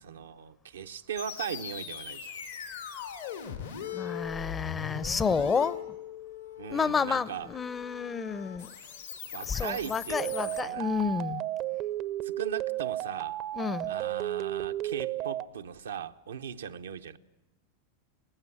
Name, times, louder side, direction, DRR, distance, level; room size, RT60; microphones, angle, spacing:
voice 1, 0.0-2.4 6.6-7.5 9.3-10.9 12.2-13.4 13.9-17.2, right 8 dB, 85° right, 0.7 m, -38 dB
sound 1, 1.2-10.6, left 8 dB, 90° left, 2.9 m, -40 dB
voice 2, 3.9-6.0 6.7-8.7 9.5-11.4 13.5-13.9, left 5 dB, 20° left, 0.6 m, -30 dB
sound 2, 10.1-15.5, right 14 dB, 50° right, 0.6 m, -33 dB
19.0 x 15.5 x 9.9 m
hypercardioid pair, 100°, 0 cm